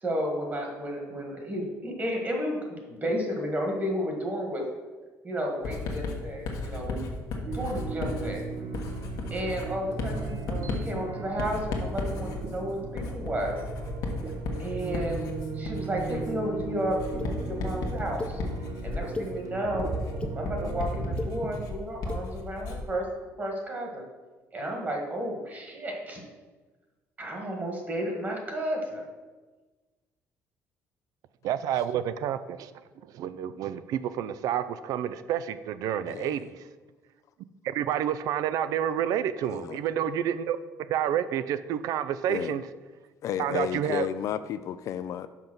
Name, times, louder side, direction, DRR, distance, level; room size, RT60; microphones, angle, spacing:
voice 1, 0.0-4.6 5.2-7.1 7.5-8.5 9.3-13.6 14.6-18.4 18.8-19.9 20.3-23.1 23.4-24.0 24.5-26.2 27.2-29.0, equal, 30° right, 1 dB, 1.6 m, -32 dB
Writing, 5.6-23.0, left 3 dB, 75° left, 1.2 m, -35 dB
sound 1, 7.4-21.6, right 5 dB, 55° right, 0.8 m, -37 dB
sound 2, 17.2-17.3 18.2-18.3 18.9-19.3 20.0-20.3 21.0-21.3 22.0-22.2, left 3 dB, 20° left, 0.7 m, -35 dB
voice 2, 31.4-32.7 33.1-36.7 37.6-40.6 40.9-42.7 43.4-44.1, right 10 dB, 75° right, 13 dB, 0.4 m, -29 dB
voice 3, 36.1-36.5 39.5-39.8 42.3-42.6 43.2-45.3, left 9 dB, 60° left, 12 dB, 0.3 m, -32 dB
5.7 x 5.2 x 6.1 m, 1.3 s
cardioid pair, 135°, 6 cm